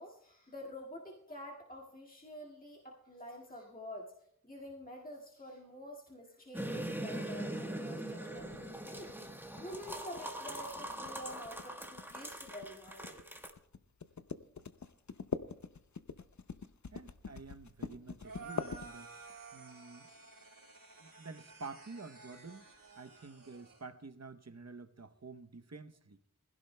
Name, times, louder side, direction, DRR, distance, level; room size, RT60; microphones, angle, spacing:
voice 1, 0.0-4.1 4.4-9.2 9.6-13.2, equal, 25° left, -3 dB, 2.0 m, -48 dB
sound 1, 6.5-13.5, right 1 dB, 5° right, 1.2 m, -42 dB
sound 2, 8.4-19.4, left 5 dB, 60° left, 0.6 m, -44 dB
voice 2, 16.9-19.1 19.5-20.1 21.0-22.7 23.0-26.2, right 4 dB, 50° right, 10 dB, 0.8 m, -49 dB
sound 3, 18.2-23.8, right 4 dB, 85° right, 4.5 m, -53 dB
20.0 x 16.0 x 2.2 m, 0.73 s
wide cardioid pair, 40°, 33 cm